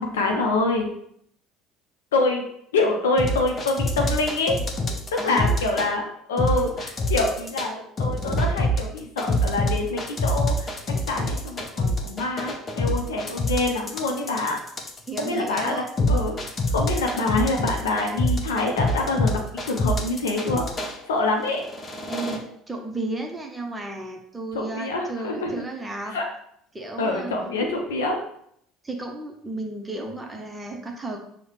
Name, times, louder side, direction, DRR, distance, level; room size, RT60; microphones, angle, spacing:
voice 1, 0.1-0.9 2.1-2.4 2.7-4.6 5.1-10.7 11.1-14.6 15.2-15.8 16.1-16.4 16.7-19.4 19.6-20.7 21.1-21.6 24.5-25.5 26.0-26.2 27.0-28.2, left 2 dB, 75° left, 1 dB, 0.5 m, -25 dB
sound 1, 3.2-5.9 6.4-7.7 8.0-21.0 21.5-22.4, left 1 dB, 30° left, 0.7 m, -25 dB
voice 2, 5.2-5.6 15.1-15.9 22.1-26.2 26.7-27.3 28.8-31.2, right 2 dB, 15° right, 2 dB, 0.7 m, -33 dB
6.3 x 2.1 x 3.0 m, 0.70 s
figure-of-eight pair, 60°, 0 cm